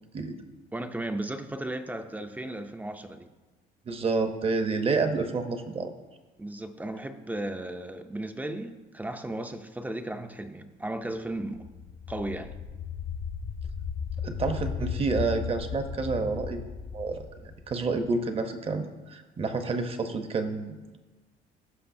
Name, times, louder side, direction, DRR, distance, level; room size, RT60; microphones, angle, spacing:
voice 1, 0.7-3.3 6.4-11.7 12.1-12.6, right 1 dB, 10° right, 0.5 m, -35 dB
voice 2, 3.9-5.9 14.2-16.6 16.9-21.0, right 4 dB, 35° right, 0.8 m, -29 dB
sound 1, 11.4-18.2, left 7 dB, 55° left, 1.0 m, -36 dB
15.5 x 5.4 x 2.6 m
cardioid pair, 110°, 17 cm